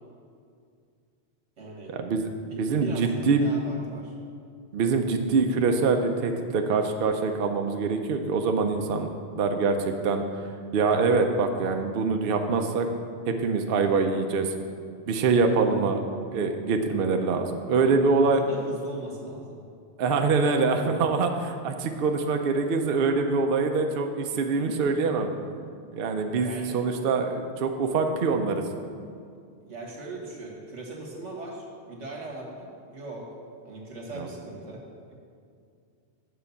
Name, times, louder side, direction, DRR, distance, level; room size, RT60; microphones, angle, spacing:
voice 1, 1.6-2.0 2.5-4.2 18.2-19.6 26.4-26.7 29.7-33.3 33.7-35.1, right 2 dB, 90° right, 0 dB, 1.8 m, -39 dB
voice 2, 2.5-3.5 4.7-9.1 9.4-10.2 10.7-12.9 13.3-14.5 15.1-16.0 16.3-18.4 20.0-25.3 25.9-28.6 34.1-34.3, right 4 dB, 60° right, 5 dB, 0.7 m, -24 dB
7.7 x 4.9 x 7.0 m, 2.3 s
omnidirectional pair, 1.2 m